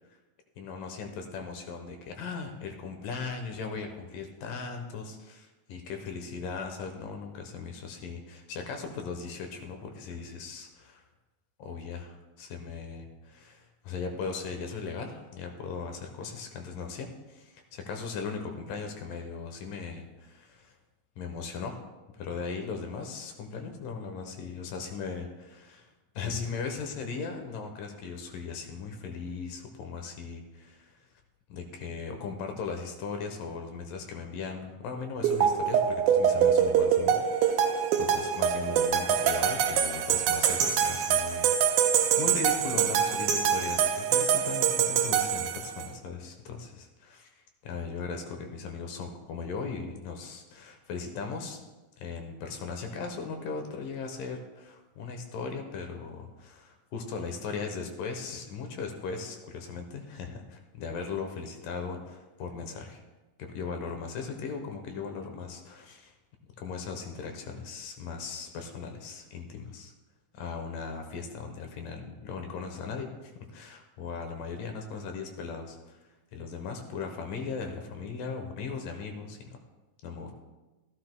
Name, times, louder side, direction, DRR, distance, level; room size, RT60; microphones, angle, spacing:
voice 1, 0.6-11.0 11.6-20.8 21.2-21.8 22.1-25.9 26.2-31.0 31.5-37.7 38.0-47.3 47.6-51.6 52.0-63.0 63.4-66.1 66.6-69.9 70.3-76.0 76.3-79.4 80.0-80.3, left 5 dB, 80° left, 4 dB, 2.6 m, -38 dB
sound 1, 35.2-45.9, right 8 dB, 75° right, 2.1 m, -25 dB
15.5 x 12.0 x 2.3 m, 1.1 s
omnidirectional pair, 3.9 m